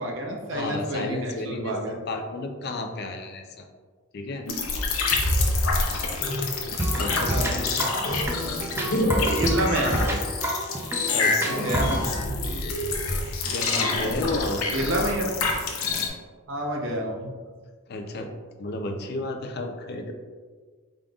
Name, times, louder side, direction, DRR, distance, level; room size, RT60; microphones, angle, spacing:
voice 1, 0.0-2.0 7.3-7.5 9.4-10.2 11.4-12.2 13.6-14.1 14.7-15.3 16.5-17.3, right 1 dB, 60° right, 1 dB, 0.7 m, -29 dB
voice 2, 0.5-3.7 4.1-4.5 7.0-7.9 11.1-11.7 13.4-14.8 17.9-18.3 18.6-20.1, left 2 dB, 50° left, 4 dB, 0.5 m, -32 dB
sound 1, 4.5-16.1, left 3 dB, 90° left, 0.7 m, -27 dB
sound 2, 6.8-12.1, right 1 dB, 10° right, 0.4 m, -28 dB
5.0 x 3.8 x 2.3 m, 1.5 s
head